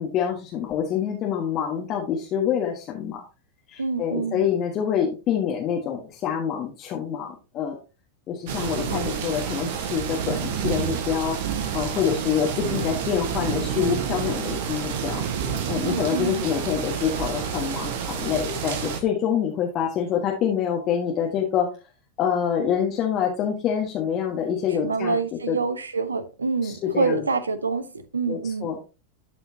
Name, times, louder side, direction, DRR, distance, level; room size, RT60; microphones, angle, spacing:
voice 1, 0.0-3.2 3.7-7.8 8.3-11.4 11.7-15.2 15.7-21.7 22.2-25.2 25.5-25.6 26.6-27.2 28.3-28.8, left 8 dB, 35° left, 1.6 m, -26 dB
voice 2, 3.8-4.4 15.8-16.4 24.8-28.7, right 4 dB, 75° right, 0.9 m, -26 dB
sound 1, 8.5-19.0, right 7 dB, 50° right, 1.4 m, -29 dB
12.0 x 5.5 x 2.8 m
figure-of-eight pair, 90°, 0 cm